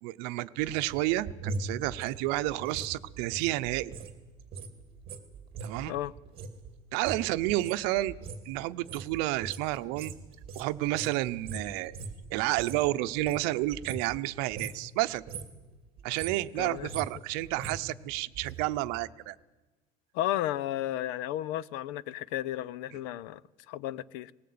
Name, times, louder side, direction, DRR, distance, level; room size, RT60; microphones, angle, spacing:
voice 1, 0.0-3.9 5.6-5.9 6.9-8.1 8.5-10.1 10.5-11.9 12.3-15.2 16.0-19.4, right 17 dB, 70° right, 0.8 m, -30 dB
sound 1, 0.6-4.1 4.4-12.9 13.2-14.2 14.5-14.9 15.2-15.6 16.0-18.6 18.9-19.0, right 4 dB, 30° right, 2.3 m, -41 dB
voice 2, 16.6-16.9 20.1-23.4 23.7-24.3, left 13 dB, 70° left, 0.7 m, -33 dB
19.5 x 19.5 x 8.7 m
cardioid pair, 165°, 17 cm